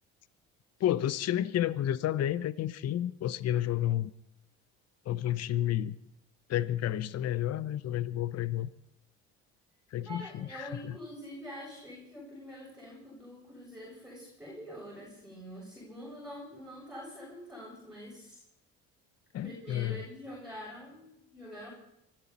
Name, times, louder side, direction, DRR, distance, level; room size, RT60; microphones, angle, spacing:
voice 1, 0.8-4.1 5.1-6.0 6.5-8.7 9.9-10.7 19.3-20.0, left 12 dB, 50° left, 16 dB, 0.8 m, -31 dB
voice 2, 10.0-18.4 19.4-21.7, equal, ahead, -4 dB, 7.9 m, -45 dB
24.5 x 13.5 x 4.3 m, 0.76 s
supercardioid pair, 75°, 32 cm